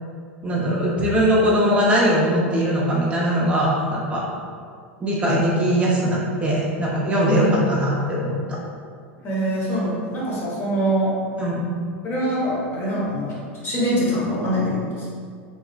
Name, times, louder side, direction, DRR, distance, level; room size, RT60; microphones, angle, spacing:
voice 1, 0.4-4.2 5.0-8.6 11.4-11.7, equal, 20° right, -5 dB, 0.4 m, -21 dB
voice 2, 7.3-7.7 9.2-11.1 12.0-15.1, equal, 35° left, -6 dB, 0.9 m, -24 dB
2.8 x 2.2 x 2.4 m, 2.1 s
figure-of-eight pair, 85°, 7 cm